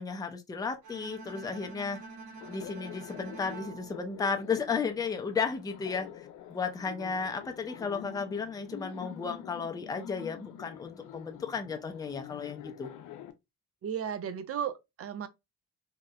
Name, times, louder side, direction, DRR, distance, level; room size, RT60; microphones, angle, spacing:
voice 1, 0.0-2.0 2.5-12.9, left 5 dB, 10° left, 0.4 m, -34 dB
Bowed string instrument, 0.8-5.0, right 3 dB, 70° right, 1.0 m, -47 dB
Laughter, 2.4-13.3, left 10 dB, 75° left, 0.5 m, -47 dB
voice 2, 13.8-15.3, right 8 dB, 50° right, 0.5 m, -35 dB
2.7 x 2.0 x 2.3 m
cardioid pair, 90°, 30 cm